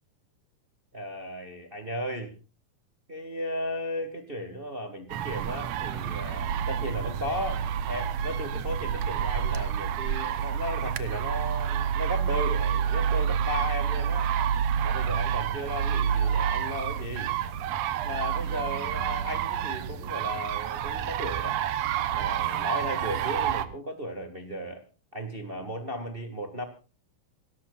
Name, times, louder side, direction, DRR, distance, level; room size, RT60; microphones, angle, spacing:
voice 1, 0.9-2.3 3.1-14.3 14.8-17.3 18.0-21.5 22.1-24.8 25.1-26.7, equal, 20° right, 5 dB, 1.5 m, -35 dB
sound 1, 5.1-23.7, right 8 dB, 75° right, 1.6 m, -28 dB
28.0 x 14.0 x 2.5 m, 0.36 s
omnidirectional pair, 4.2 m